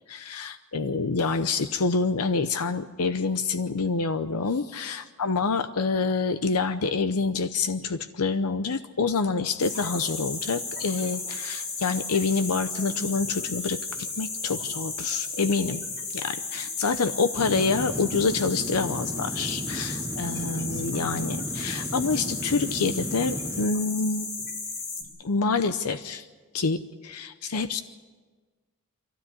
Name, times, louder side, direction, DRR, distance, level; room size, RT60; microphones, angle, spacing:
voice 1, 0.1-15.8 16.1-24.3 25.2-26.3 26.5-27.8, left 4 dB, 85° left, 10 dB, 0.7 m, -27 dB
sound 1, 9.6-25.0, left 3 dB, 55° left, 5.7 m, -34 dB
sound 2, 17.4-23.7, right 1 dB, 15° right, 0.8 m, -35 dB
24.0 x 15.5 x 9.7 m, 1.4 s
head